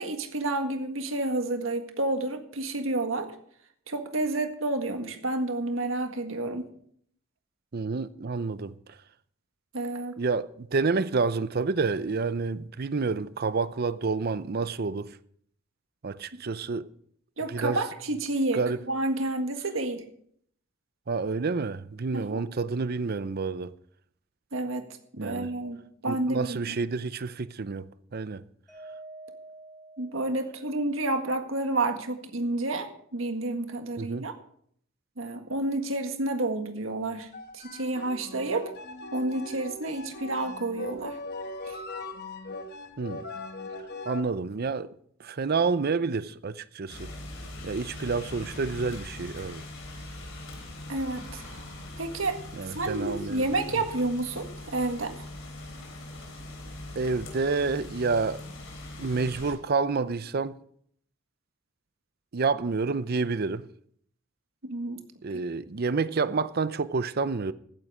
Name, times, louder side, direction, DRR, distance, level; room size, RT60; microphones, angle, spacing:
voice 1, 0.0-3.3 3.9-6.7 9.7-10.1 17.4-20.0 22.1-22.4 24.5-24.9 25.1-25.8 26.0-26.7 30.0-34.4 35.2-37.3 37.5-38.7 39.1-41.2 41.7-41.8 50.9-51.6 52.0-55.1 64.6-65.0, right 2 dB, 75° right, 1.8 m, -30 dB
voice 2, 7.7-8.7 10.2-15.2 16.0-16.9 17.5-17.8 18.5-18.8 21.1-23.7 25.2-25.5 26.1-28.4 34.0-34.3 43.0-43.2 44.1-44.9 45.2-47.1 47.6-49.6 52.6-53.5 57.0-58.4 59.0-60.6 62.3-63.7 65.2-67.5, right 4 dB, 50° right, 0.6 m, -29 dB
Mallet percussion, 28.7-30.9, right 2 dB, ahead, 4.2 m, -47 dB
sound 1, 37.2-44.2, left 2 dB, 50° left, 1.2 m, -40 dB
sound 2, 46.9-59.5, left 1 dB, 65° left, 3.9 m, -41 dB
15.5 x 9.5 x 4.9 m
head